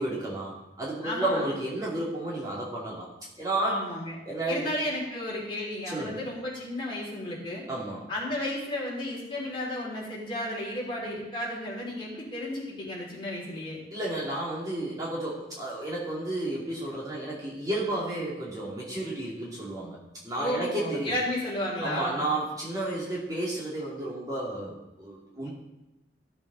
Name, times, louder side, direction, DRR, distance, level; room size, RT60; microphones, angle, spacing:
voice 1, 0.0-3.1 3.4-3.8 4.3-4.7 5.9-6.2 7.7-8.0 13.9-21.1 21.8-25.5, right 1 dB, 20° right, -6 dB, 2.6 m, -32 dB
voice 2, 1.0-1.5 3.6-4.2 4.5-7.6 8.1-13.8 20.4-22.3, left 1 dB, 30° left, -5 dB, 3.6 m, -33 dB
15.5 x 7.2 x 4.0 m, 0.93 s
head